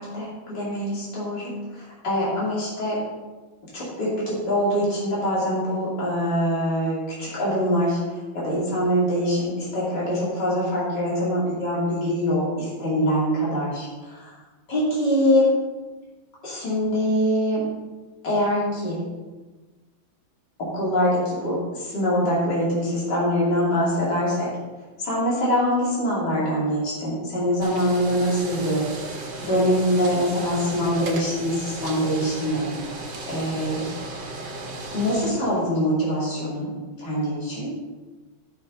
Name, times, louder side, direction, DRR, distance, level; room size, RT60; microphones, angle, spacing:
voice 1, 0.0-3.0 3.7-14.3 14.7-15.4 16.4-17.6 18.2-19.0 20.6-24.5 25.0-28.9 29.4-32.7 33.3-33.9 34.9-37.7, equal, 55° left, -7 dB, 3.5 m, -24 dB
sound 1, 27.6-35.3, right 2 dB, 65° right, 2.1 m, -35 dB
12.5 x 6.3 x 3.9 m, 1.3 s
omnidirectional pair, 2.2 m